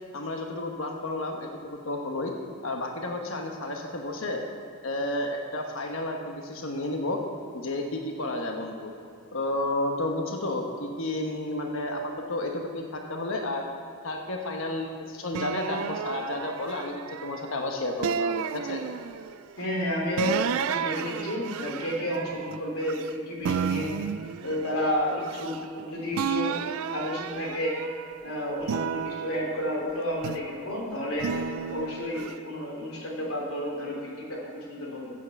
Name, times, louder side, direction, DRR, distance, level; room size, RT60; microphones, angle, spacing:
voice 1, 0.1-2.3 2.6-4.4 4.8-7.2 7.5-8.9 9.3-13.6 14.0-18.8, left 2 dB, 65° left, 2 dB, 1.2 m, -31 dB
sound 1, 15.3-17.5 18.0-19.4 20.2-23.1 23.4-25.8 26.1-28.1 28.6-30.6 31.2-32.3, right 7 dB, 75° right, 0.4 m, -32 dB
voice 2, 19.6-23.9 24.4-27.7 28.2-31.3 31.7-35.1, equal, 85° left, -3 dB, 3.3 m, -31 dB
9.3 x 9.3 x 7.2 m, 2.6 s
head